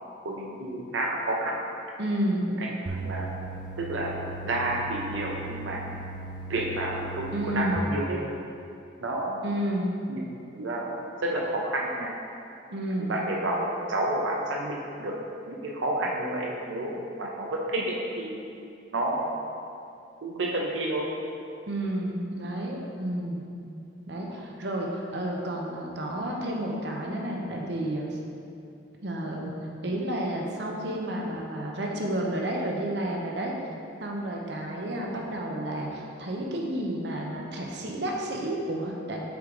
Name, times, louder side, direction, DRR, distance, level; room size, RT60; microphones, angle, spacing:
voice 1, 0.2-1.6 2.6-3.4 3.8-4.2 4.4-5.9 6.5-8.2 9.0-9.4 10.1-10.3 10.5-10.9 11.2-12.1 13.0-15.2 15.5-18.4 18.9-19.4 20.2-21.1, right 1 dB, 90° right, -2 dB, 0.7 m, -30 dB
voice 2, 2.0-2.5 7.3-7.8 9.4-9.9 12.7-13.2 21.7-23.4 24.1-28.2 29.0-29.5 29.8-33.5 34.0-39.2, right 1 dB, 65° right, -1 dB, 0.8 m, -31 dB
sound 1, 2.9-7.8, right 2 dB, 25° right, 0.3 m, -38 dB
7.0 x 4.7 x 3.8 m, 2.6 s
head